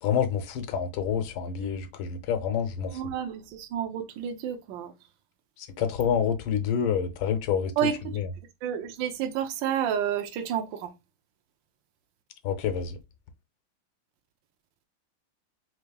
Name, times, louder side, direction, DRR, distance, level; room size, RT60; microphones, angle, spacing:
voice 1, 0.0-2.9 5.8-7.7 12.4-13.0, left 7 dB, 75° left, 1.5 m, -27 dB
voice 2, 2.9-4.9 7.8-8.2 8.6-10.9, right 9 dB, 70° right, 1.4 m, -30 dB
6.5 x 2.8 x 2.3 m
omnidirectional pair, 2.4 m